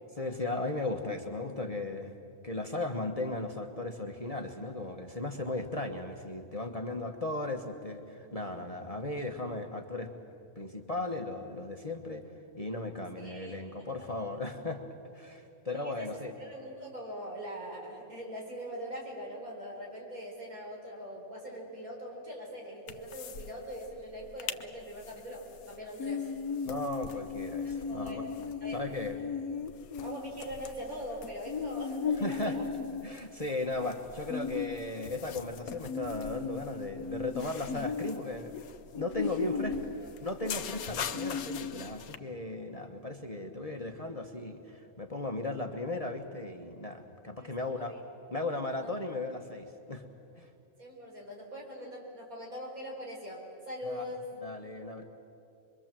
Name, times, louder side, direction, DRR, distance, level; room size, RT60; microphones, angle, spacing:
voice 1, 0.1-2.1 2.4-10.1 10.5-12.2 12.5-14.8 15.1-16.3 26.6-28.2 28.7-29.2 32.2-32.6 33.0-38.6 38.9-39.7 40.2-47.9 48.3-50.0 50.4-50.5 53.9-54.0 54.4-55.0, left 2 dB, 25° left, 3 dB, 1.2 m, -36 dB
voice 2, 13.2-14.1 15.7-26.3 27.6-28.3 28.6-28.8 29.2-29.3 30.0-32.7 39.3-39.6 40.0-40.1 47.4-48.0 48.8-48.9 50.8-54.3, equal, 80° right, -1 dB, 5.0 m, -42 dB
sound 1, 22.9-23.5 23.8-23.9 24.2-24.6 25.0-42.2, left 6 dB, 85° left, 1.3 m, -37 dB
25.0 x 23.0 x 7.6 m, 2.7 s
omnidirectional pair, 1.5 m